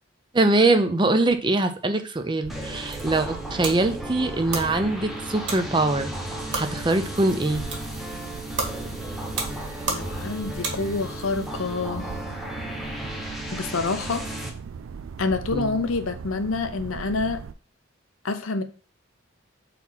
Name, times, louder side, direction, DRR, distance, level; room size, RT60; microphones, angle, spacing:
voice 1, 0.3-6.1 6.5-7.6 15.5-15.8, right 2 dB, 25° right, 0.5 m, -23 dB
sound 1, 2.4-17.5, right 6 dB, 80° right, 0.4 m, -39 dB
sound 2, 2.5-14.5, equal, ahead, 0.8 m, -35 dB
sound 3, 2.6-11.2, right 3 dB, 60° right, 1.7 m, -35 dB
voice 2, 9.9-12.2 13.5-14.2 15.2-17.4 18.2-18.6, left 3 dB, 90° left, 0.7 m, -27 dB
4.2 x 4.2 x 5.6 m
head